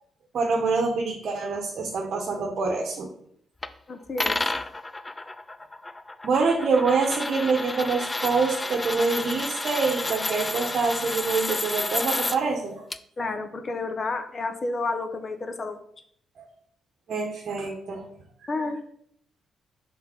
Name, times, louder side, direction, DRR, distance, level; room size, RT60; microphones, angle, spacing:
voice 1, 0.3-3.1 6.2-12.8 13.2-13.4 16.4-16.5 17.1-18.0 18.6-18.7, right 4 dB, 60° right, 2 dB, 1.0 m, -26 dB
sound 1, 3.6-3.7 4.2-12.4 12.9-13.0, left 2 dB, 15° left, 0.3 m, -31 dB
voice 2, 3.9-4.4 13.2-15.8 18.5-18.8, left 3 dB, 35° left, 8 dB, 0.8 m, -30 dB
5.7 x 3.5 x 5.2 m, 0.66 s
cardioid pair, 90°, 0 cm